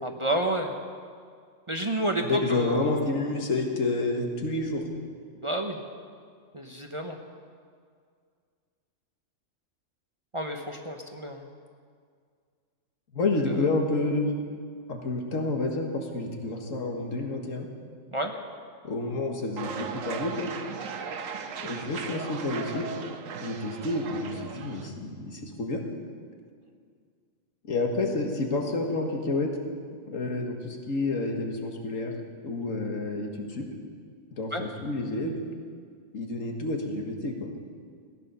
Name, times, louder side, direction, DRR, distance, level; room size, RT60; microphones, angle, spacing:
voice 1, 0.0-0.7 1.7-3.0 5.4-5.8 6.5-7.2 10.3-11.4 18.1-18.3 34.5-34.6, right 1 dB, 30° right, 3 dB, 0.8 m, -30 dB
voice 2, 2.2-4.9 13.1-14.3 14.9-17.7 18.8-20.5 21.6-22.8 23.4-25.8 27.6-29.5 30.1-32.1 32.4-33.7 34.3-35.3 36.1-37.5, left 2 dB, 80° left, 2 dB, 1.9 m, -29 dB
sound 1, 19.6-24.9, right 6 dB, 80° right, 1.3 m, -37 dB
15.5 x 10.5 x 6.8 m, 2.1 s
omnidirectional pair, 1.4 m